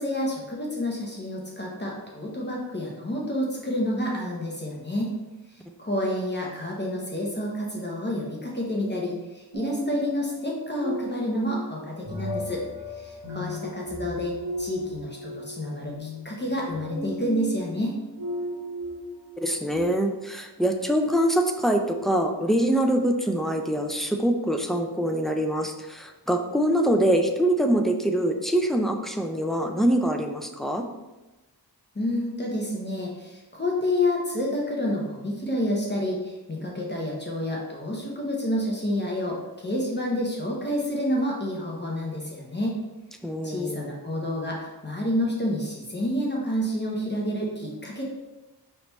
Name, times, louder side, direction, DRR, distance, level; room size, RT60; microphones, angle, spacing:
voice 1, 0.0-5.1 5.8-12.6 13.0-18.0 31.9-42.8 43.4-48.0, left 1 dB, 25° left, -2 dB, 0.8 m, -29 dB
sound 1, 9.5-19.8, equal, 45° right, 1.0 m, -36 dB
voice 2, 19.4-30.8 43.2-43.9, right 1 dB, ahead, 3 dB, 0.3 m, -24 dB
5.0 x 3.3 x 3.0 m, 1.1 s
wide cardioid pair, 105°, 41 cm